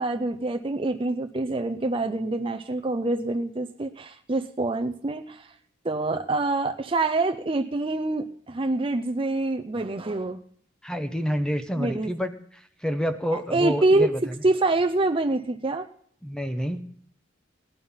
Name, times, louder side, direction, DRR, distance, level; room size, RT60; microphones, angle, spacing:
voice 1, 0.0-5.5 5.8-10.4 11.8-12.1 13.3-14.1 14.4-15.9, right 2 dB, 25° right, 7 dB, 0.5 m, -26 dB
voice 2, 10.8-12.3 12.8-14.2 16.2-16.9, equal, 5° left, 9 dB, 0.8 m, -28 dB
18.0 x 11.0 x 5.6 m, 0.62 s
head